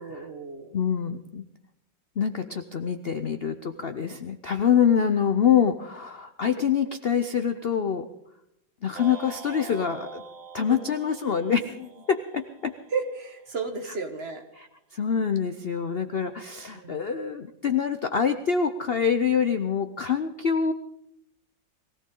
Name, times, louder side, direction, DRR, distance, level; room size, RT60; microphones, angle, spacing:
voice 1, 0.0-0.8 10.7-10.8 12.9-14.5 16.7-17.1, right 4 dB, 35° right, 5 dB, 1.5 m, -33 dB
voice 2, 0.7-1.4 2.2-8.1 8.8-10.2 10.5-12.7 14.6-14.7 14.9-20.7, left 7 dB, 75° left, 9 dB, 0.5 m, -25 dB
sound 1, 8.9-13.3, right 3 dB, 70° right, 2.2 m, -44 dB
22.5 x 16.5 x 3.8 m, 0.78 s
omnidirectional pair, 2.0 m